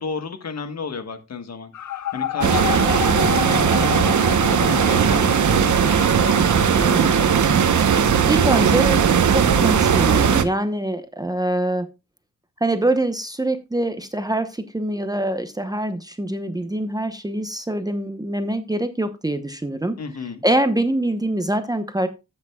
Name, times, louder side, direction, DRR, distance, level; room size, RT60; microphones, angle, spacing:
voice 1, 0.0-6.0 20.0-20.4, left 5 dB, 65° left, 8 dB, 1.4 m, -33 dB
sound 1, 1.7-7.9, left 11 dB, 85° left, 0.8 m, -30 dB
sound 2, 2.4-10.4, right 7 dB, 85° right, 1.0 m, -18 dB
voice 2, 6.8-7.3 7.8-11.9 12.6-20.0 20.4-22.1, right 1 dB, 15° right, 8 dB, 0.8 m, -24 dB
12.5 x 8.6 x 2.3 m, 0.26 s
wide cardioid pair, 130°, 29 cm